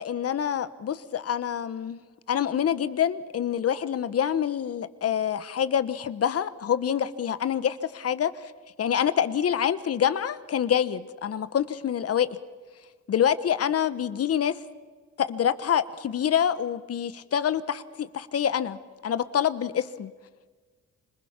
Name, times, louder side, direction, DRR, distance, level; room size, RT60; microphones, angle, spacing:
voice 1, 0.0-2.0 2.3-8.5 8.8-12.3 13.1-14.6 15.2-18.8 19.0-20.1, left 9 dB, 50° left, 14 dB, 1.2 m, -26 dB
26.5 x 21.0 x 5.9 m, 1.4 s
cardioid pair, 90°, 30 cm